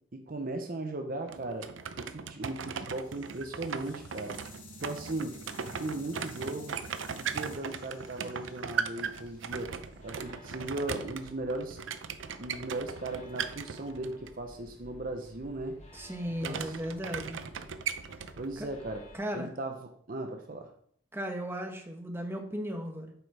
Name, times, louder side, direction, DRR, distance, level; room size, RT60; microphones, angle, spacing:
voice 1, 0.1-1.7 2.0-4.4 4.8-5.4 5.8-6.8 7.2-9.8 10.0-11.8 12.4-15.8 16.4-16.8 18.4-19.1 19.3-20.7, right 2 dB, 50° right, 5 dB, 0.8 m, -37 dB
sound 1, 1.3-14.3 16.4-18.5, right 6 dB, 80° right, 0.6 m, -38 dB
sound 2, 2.6-10.7, equal, 70° left, 2.6 m, -51 dB
sound 3, 9.0-19.2, left 1 dB, 35° left, 1.3 m, -54 dB
voice 2, 15.9-17.4 18.6-18.7 19.1-19.5 21.1-23.1, equal, 10° right, 3 dB, 1.0 m, -36 dB
7.7 x 5.1 x 4.8 m, 0.62 s
head